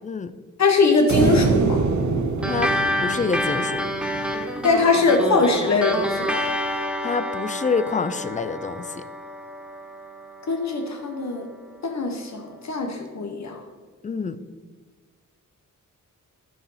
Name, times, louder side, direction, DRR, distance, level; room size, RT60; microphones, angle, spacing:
voice 1, 0.6-1.8 4.6-6.4 10.5-11.5 11.8-13.6, left 3 dB, 55° left, 3 dB, 1.2 m, -21 dB
sound 1, 1.1-4.5, right 4 dB, 60° right, 0.9 m, -24 dB
sound 2, 2.4-11.2, equal, 5° right, 0.7 m, -28 dB
voice 2, 3.0-3.9 7.0-9.0 14.0-14.4, left 5 dB, 25° left, 13 dB, 0.4 m, -26 dB
13.0 x 4.8 x 5.6 m, 1.4 s
wide cardioid pair, 155°, 32 cm